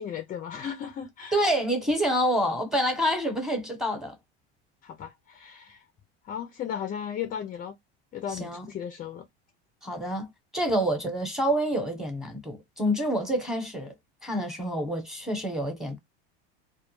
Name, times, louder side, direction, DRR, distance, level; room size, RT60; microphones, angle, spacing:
voice 1, 0.0-1.5 4.8-5.8 6.2-7.8 8.1-9.3, left 8 dB, 30° left, 0.4 m, -36 dB
voice 2, 1.3-4.1 8.3-8.6 9.8-13.9 14.2-16.0, equal, ahead, 0.9 m, -27 dB
2.2 x 2.0 x 3.0 m
supercardioid pair, 100°, 31 cm